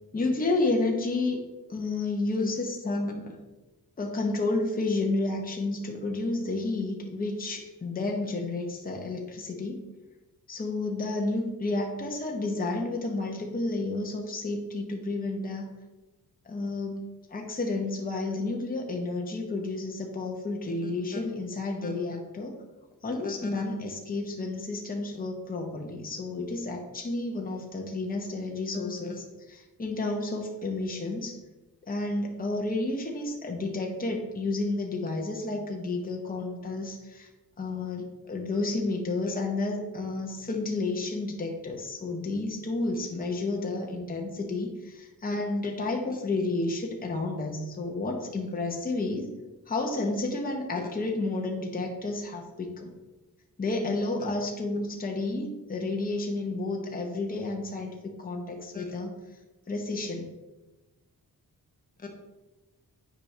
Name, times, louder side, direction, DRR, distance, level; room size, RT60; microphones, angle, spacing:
voice 1, 0.1-3.4 4.0-9.8 10.5-15.7 16.4-22.6 23.0-31.4 31.8-37.3 37.6-49.3 49.7-52.9 53.6-59.1 59.7-60.3 62.0-62.1, left 2 dB, 25° left, 1 dB, 0.9 m, -31 dB
8.9 x 5.1 x 3.3 m, 1.1 s
wide cardioid pair, 140°, 37 cm